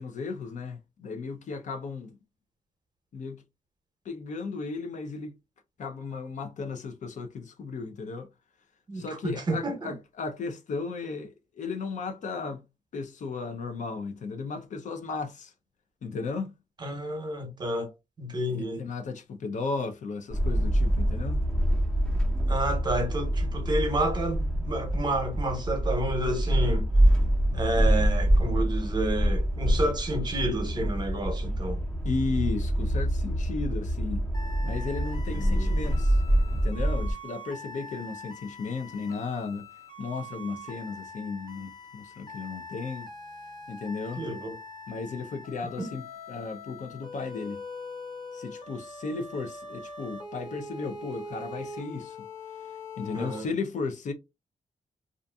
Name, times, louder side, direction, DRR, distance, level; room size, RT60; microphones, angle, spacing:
voice 1, 0.0-2.1 3.1-3.4 4.0-5.3 5.8-8.3 8.9-12.6 12.9-15.5 16.0-16.5 18.5-21.4 32.0-34.3 34.6-36.2 36.5-39.7 40.0-43.1 43.7-44.2 44.9-47.6 48.3-52.2 53.0-54.1, left 4 dB, 65° left, 0.5 m, -35 dB
voice 2, 8.9-9.9 16.8-17.9 18.2-18.8 22.5-26.8 27.5-31.8 35.4-35.8 44.2-44.5 45.8-45.9 53.1-53.5, right 1 dB, 35° right, 0.8 m, -30 dB
sound 1, 20.3-37.1, equal, 5° left, 0.7 m, -26 dB
sound 2, 34.3-53.4, left 2 dB, 30° left, 1.0 m, -43 dB
2.6 x 2.4 x 2.3 m
wide cardioid pair, 130°, 13 cm